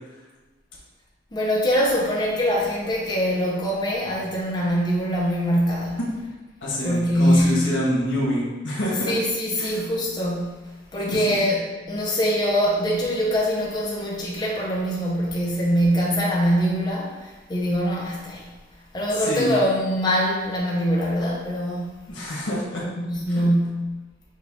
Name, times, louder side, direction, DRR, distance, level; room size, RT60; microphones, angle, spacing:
voice 1, 1.3-6.0 6.8-7.7 9.1-10.6 10.9-11.6 11.9-18.5 18.9-22.0 23.0-23.9, equal, 20° left, -5 dB, 0.6 m, -23 dB
voice 2, 6.6-9.1 9.6-9.8 11.1-11.4 19.1-19.5 22.1-22.8 23.3-23.4, equal, 85° left, -4 dB, 1.4 m, -26 dB
5.5 x 2.4 x 3.5 m, 1.2 s
head